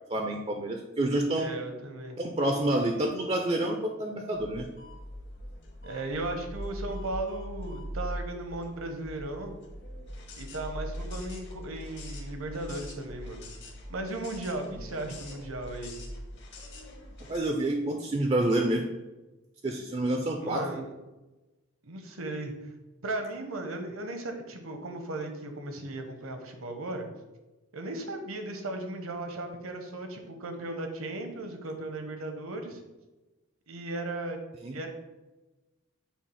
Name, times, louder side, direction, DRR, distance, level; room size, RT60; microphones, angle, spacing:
voice 1, 0.1-1.5 2.2-4.7 17.3-18.9 19.6-20.6 34.6-34.8, right 1 dB, 25° right, 3 dB, 0.4 m, -28 dB
voice 2, 1.3-2.2 5.8-9.5 10.3-13.5 13.9-15.9 20.4-20.9 21.8-22.5 23.0-27.1 27.7-32.8 33.7-34.4 34.7-34.9, right 2 dB, 75° right, 5 dB, 0.9 m, -36 dB
sound 1, 4.3-17.4, equal, 55° left, 1.0 m, -42 dB
7.1 x 2.4 x 5.6 m, 1.1 s
head